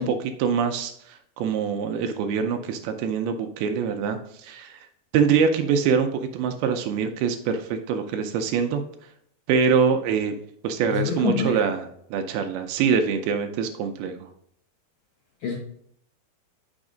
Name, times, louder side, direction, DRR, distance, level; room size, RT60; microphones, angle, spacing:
voice 1, 0.0-4.9 5.1-8.8 9.5-10.4 10.6-14.3, right 6 dB, 80° right, 6 dB, 2.3 m, -24 dB
voice 2, 10.9-11.6 15.4-15.6, left 6 dB, 90° left, 0 dB, 1.6 m, -26 dB
6.2 x 5.1 x 3.7 m, 0.68 s
omnidirectional pair, 4.7 m